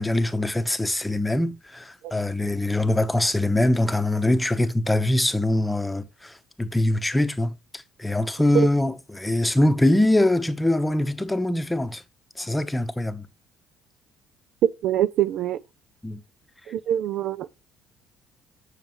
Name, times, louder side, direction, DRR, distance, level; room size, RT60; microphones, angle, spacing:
voice 1, 0.0-12.0 12.4-13.3 16.0-16.2, left 1 dB, 10° left, 1.0 m, -23 dB
voice 2, 14.6-15.6 16.7-17.5, right 11 dB, 70° right, 0.5 m, -23 dB
8.9 x 6.7 x 3.1 m
cardioid pair, 100°, 0 cm